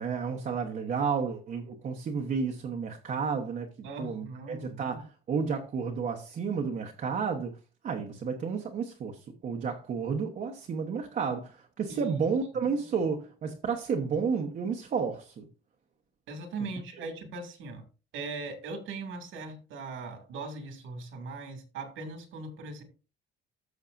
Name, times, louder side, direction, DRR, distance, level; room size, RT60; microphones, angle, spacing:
voice 1, 0.0-7.6 7.8-15.5, right 5 dB, 40° right, 1.1 m, -31 dB
voice 2, 3.8-4.8 11.9-12.3 16.3-17.8 18.1-22.8, right 3 dB, 80° right, 2.5 m, -39 dB
14.5 x 6.4 x 2.6 m
cardioid pair, 160°, 20 cm